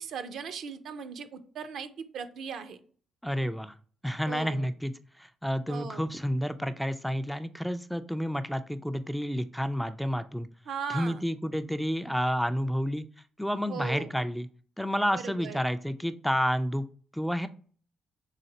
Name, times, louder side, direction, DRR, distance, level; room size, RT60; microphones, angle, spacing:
voice 1, 0.0-2.8 4.3-4.7 5.7-6.0 10.7-11.2 13.7-14.1 15.1-15.6, right 6 dB, 70° right, 9 dB, 0.5 m, -38 dB
voice 2, 3.2-3.7 4.0-10.5 10.9-13.1 13.4-14.5 14.8-16.9 17.1-17.5, equal, ahead, 10 dB, 0.3 m, -30 dB
4.0 x 3.2 x 2.8 m, 0.43 s
cardioid pair, 90°, 0 cm